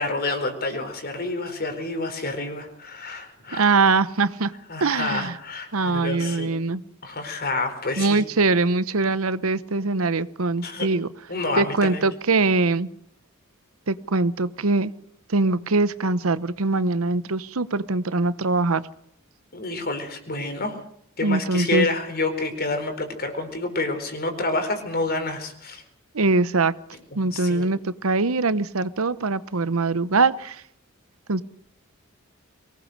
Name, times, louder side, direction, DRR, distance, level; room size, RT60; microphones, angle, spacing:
voice 1, 0.0-3.7 4.7-6.5 7.0-8.2 10.6-10.9 11.3-12.0 19.5-20.8 21.2-25.8 27.2-27.7, left 2 dB, 50° left, 7 dB, 4.3 m, -28 dB
voice 2, 3.5-4.5 4.8-5.4 5.7-6.8 8.0-11.1 11.5-12.9 13.9-14.9 15.3-18.8 21.2-21.9 26.1-26.7 27.1-30.6 31.3-31.4, right 3 dB, 85° right, 15 dB, 0.9 m, -22 dB
23.5 x 18.5 x 6.6 m, 0.69 s
head